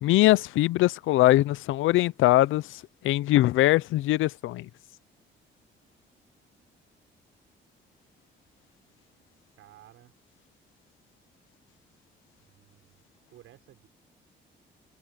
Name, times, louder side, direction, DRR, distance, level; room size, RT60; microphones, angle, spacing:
voice 1, 0.0-4.7, left 16 dB, 85° left, 0.6 m, -22 dB
voice 2, 9.6-10.1 12.4-13.0 13.3-13.9, right 13 dB, 85° right, 6.1 m, -54 dB
cardioid pair, 90°, 20 cm